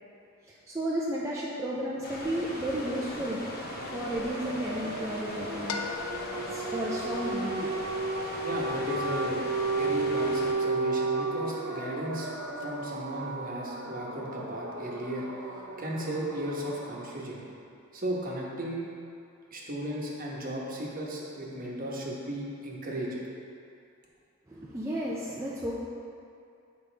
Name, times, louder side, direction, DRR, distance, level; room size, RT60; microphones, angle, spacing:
voice 1, 0.7-3.4 3.9-5.8 6.5-7.7 24.5-25.7, right 1 dB, 15° right, -6 dB, 0.5 m, -33 dB
sound 1, 2.0-10.5, left 1 dB, 50° left, 1.0 m, -40 dB
sound 2, 2.5-17.1, right 3 dB, 65° right, 0.7 m, -34 dB
sound 3, 5.7-15.5, left 5 dB, 90° left, 0.4 m, -45 dB
voice 2, 8.4-9.4 9.7-12.3 12.6-17.4 17.9-18.8 19.5-23.3, right 1 dB, 45° right, -3 dB, 1.1 m, -35 dB
8.0 x 5.2 x 3.4 m, 2.4 s
head